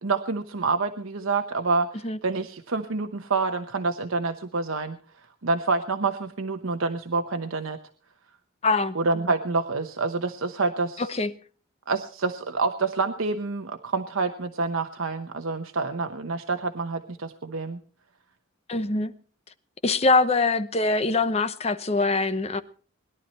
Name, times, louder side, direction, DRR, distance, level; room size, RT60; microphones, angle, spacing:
voice 1, 0.0-5.0 5.4-7.8 8.9-11.2 11.9-17.8, right 3 dB, 85° right, 1.0 m, -27 dB
voice 2, 8.6-9.0 11.0-11.3 18.7-19.1 19.8-22.6, left 3 dB, 30° left, 0.9 m, -23 dB
20.5 x 11.5 x 4.3 m
head